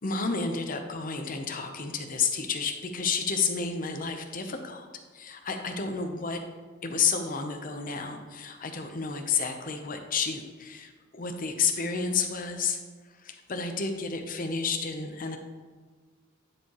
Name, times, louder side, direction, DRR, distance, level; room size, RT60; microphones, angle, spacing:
voice 1, 0.0-4.9 5.1-6.4 6.8-12.8 13.2-15.4, left 5 dB, 45° left, 5 dB, 0.7 m, -30 dB
10.5 x 4.5 x 3.0 m, 1.5 s
head